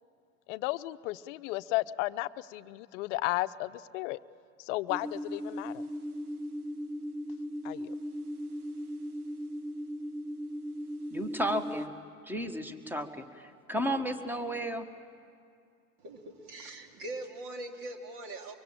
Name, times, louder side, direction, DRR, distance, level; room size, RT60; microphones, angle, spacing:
voice 1, 0.5-4.2 4.6-5.8 7.6-7.9, left 18 dB, 55° left, 14 dB, 0.8 m, -34 dB
sound 1, 4.9-11.9, equal, 85° right, 1.6 m, -38 dB
voice 2, 11.1-11.9 12.2-14.9, equal, 5° right, 9 dB, 1.6 m, -33 dB
voice 3, 16.0-18.5, right 2 dB, 50° right, 4 dB, 3.0 m, -42 dB
24.0 x 24.0 x 8.8 m, 2.4 s
hypercardioid pair, 85°, 44 cm